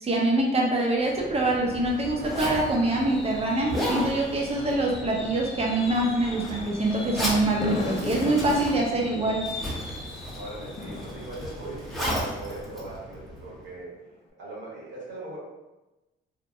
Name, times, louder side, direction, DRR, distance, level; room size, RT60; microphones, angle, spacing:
voice 1, 0.0-9.5, right 2 dB, 30° right, 0 dB, 0.6 m, -25 dB
Zipper (clothing), 1.0-13.7, equal, ahead, 0.8 m, -35 dB
Fireworks, 1.7-13.2 13.6-13.9 14.1-14.2, left 3 dB, 30° left, 0.4 m, -39 dB
voice 2, 10.3-13.9 14.4-15.4, right 2 dB, 70° right, -5 dB, 1.2 m, -39 dB
2.8 x 2.1 x 2.5 m, 1.0 s
cardioid pair, 90°, 20 cm